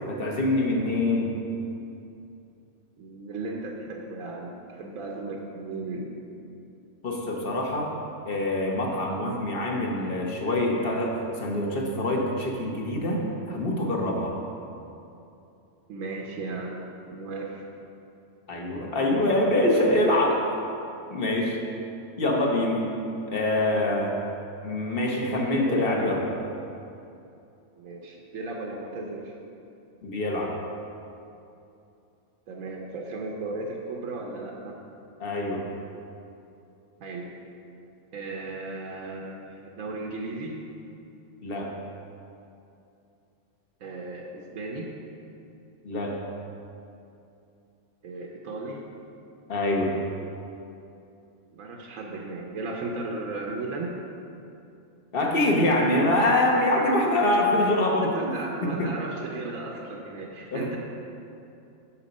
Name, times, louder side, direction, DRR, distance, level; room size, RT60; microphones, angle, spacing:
voice 1, 0.0-1.3 7.0-7.9 8.2-14.4 18.5-20.4 21.1-21.6 22.2-22.9 23.3-24.1 24.6-26.2 30.0-30.5 35.2-35.6 41.4-41.7 45.8-46.2 49.5-49.9 55.1-58.9 60.5-60.8, left 1 dB, 45° left, 0 dB, 1.2 m, -25 dB
voice 2, 3.0-6.1 15.9-17.6 19.6-19.8 20.1-20.4 25.4-26.1 27.8-29.4 32.5-34.8 37.0-37.3 38.1-40.6 43.8-44.9 48.0-48.8 51.5-53.9 58.0-60.8, right 2 dB, 90° right, 0 dB, 1.2 m, -36 dB
7.2 x 6.7 x 5.3 m, 2.7 s
omnidirectional pair, 1.3 m